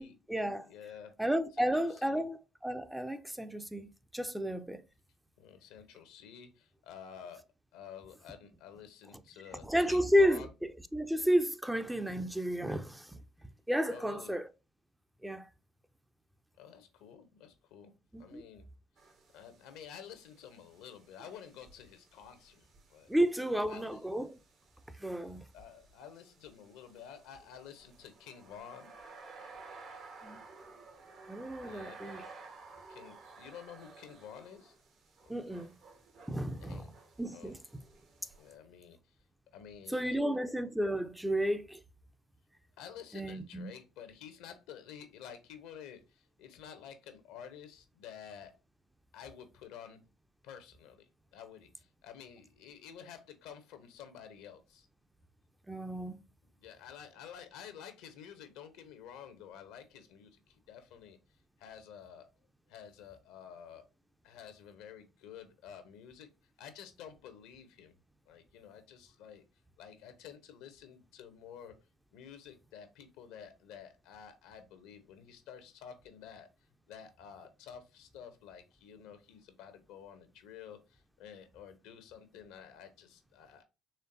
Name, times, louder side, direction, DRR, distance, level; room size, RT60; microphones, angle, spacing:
voice 1, 0.0-0.7 1.2-2.4 2.6-4.8 9.6-13.2 13.7-14.5 15.2-15.5 18.1-18.4 23.1-24.4 25.0-25.4 30.2-30.4 31.3-32.2 35.3-35.7 36.3-36.8 37.2-37.6 39.9-41.8 43.1-43.7 55.7-56.2, equal, 5° right, 0.4 m, -32 dB
voice 2, 0.6-1.1 1.6-2.2 5.4-7.4 7.7-10.5 13.9-14.3 16.6-17.9 18.2-18.6 19.3-23.1 23.4-24.1 25.5-28.9 31.6-32.0 32.9-34.7 35.2-35.7 36.6-36.9 37.3-37.6 38.3-39.2 39.5-40.2 42.8-48.5 49.1-50.0 50.4-51.1 51.3-54.9 56.6-61.2 61.6-62.3 62.7-63.8 64.2-66.3 66.6-68.0 68.3-69.4 69.8-71.7 72.1-76.5 76.9-83.6, left 8 dB, 75° left, 0.7 m, -51 dB
sound 1, 19.0-38.5, right 4 dB, 60° right, 1.2 m, -55 dB
4.3 x 3.1 x 2.5 m
hypercardioid pair, 60°, 0 cm